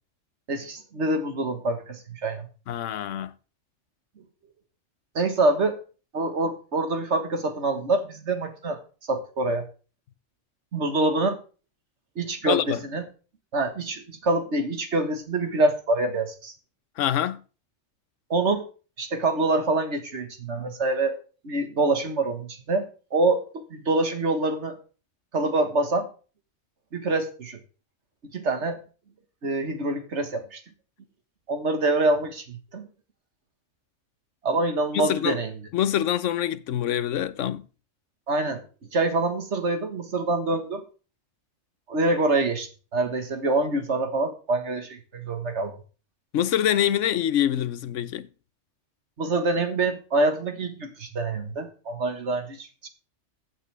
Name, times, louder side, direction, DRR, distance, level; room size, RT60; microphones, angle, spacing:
voice 1, 0.5-2.5 5.2-5.8 6.1-8.8 9.1-9.7 10.7-11.4 12.2-13.0 13.5-16.5 18.3-18.7 19.0-21.2 21.4-24.8 25.3-26.1 26.9-27.6 28.3-28.8 29.4-30.6 31.5-32.9 34.4-35.5 38.3-38.6 38.9-40.8 41.9-45.7 49.2-52.9, right 2 dB, 70° right, 1.8 m, -25 dB
voice 2, 2.7-3.3 12.4-12.8 17.0-17.4 34.9-35.4 35.7-37.7 46.3-48.3, left 11 dB, 85° left, 1.0 m, -25 dB
15.0 x 8.3 x 3.4 m
omnidirectional pair, 1.2 m